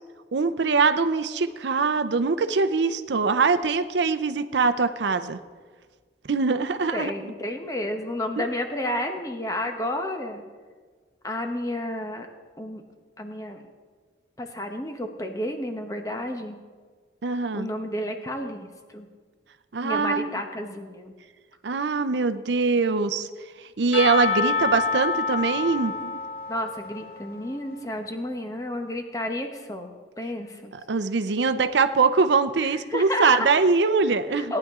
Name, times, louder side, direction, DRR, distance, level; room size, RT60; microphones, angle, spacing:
voice 1, 0.3-5.4 6.3-7.1 8.4-8.5 17.2-17.7 19.7-20.4 21.6-23.3 23.8-26.2 30.9-34.5, right 4 dB, 75° right, 10 dB, 0.6 m, -23 dB
voice 2, 6.9-10.4 11.2-12.3 12.6-12.8 13.2-13.6 14.4-16.6 17.5-19.1 19.8-21.1 26.5-30.7 32.6-33.5 34.5-34.6, left 1 dB, 20° left, 4 dB, 0.9 m, -31 dB
Percussion / Church bell, 23.9-27.8, left 5 dB, 55° left, 2.0 m, -28 dB
18.0 x 10.0 x 3.6 m, 1.5 s
head